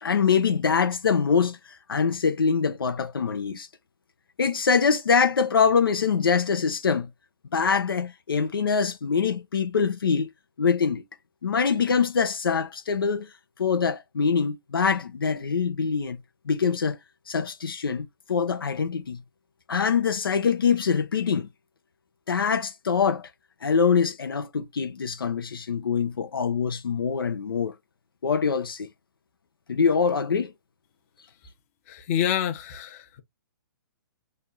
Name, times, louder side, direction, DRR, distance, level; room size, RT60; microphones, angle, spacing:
voice 1, 0.0-3.7 4.4-7.1 7.5-10.3 10.6-11.0 11.4-13.3 13.6-16.2 16.5-17.0 17.3-19.2 19.7-21.5 22.3-23.3 23.6-27.7 28.2-28.9 29.7-30.5, left 6 dB, 85° left, 0.7 m, -24 dB
voice 2, 31.9-33.2, left 10 dB, 40° left, 0.9 m, -27 dB
3.3 x 2.4 x 4.0 m
hypercardioid pair, 135°, 12 cm